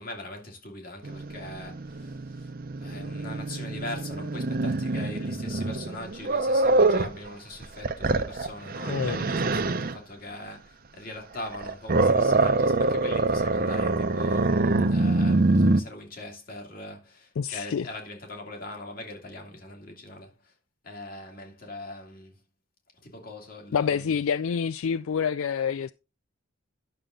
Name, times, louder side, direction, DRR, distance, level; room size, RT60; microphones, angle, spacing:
voice 1, 0.0-2.5 2.8-20.6 20.8-22.4 22.9-24.2, left 2 dB, 45° left, 2.5 m, -41 dB
Growling, 1.0-7.2 7.6-10.0 11.4-15.8, right 2 dB, 45° right, 0.7 m, -25 dB
voice 2, 17.4-17.9 23.7-25.9, left 7 dB, 75° left, 0.4 m, -27 dB
11.0 x 6.7 x 3.7 m
head